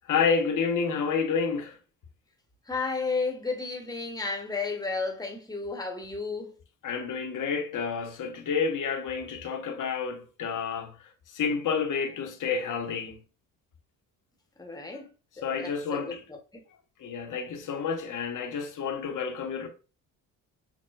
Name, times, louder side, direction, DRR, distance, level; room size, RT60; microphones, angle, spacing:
voice 1, 0.1-1.8 6.8-10.9 11.3-13.2 15.4-16.2 17.0-19.7, left 5 dB, 50° left, 0.9 m, -29 dB
voice 2, 2.7-6.6 14.6-15.1 15.5-16.6, left 4 dB, 10° left, 1.0 m, -33 dB
5.9 x 2.1 x 2.4 m
supercardioid pair, 60°, 41 cm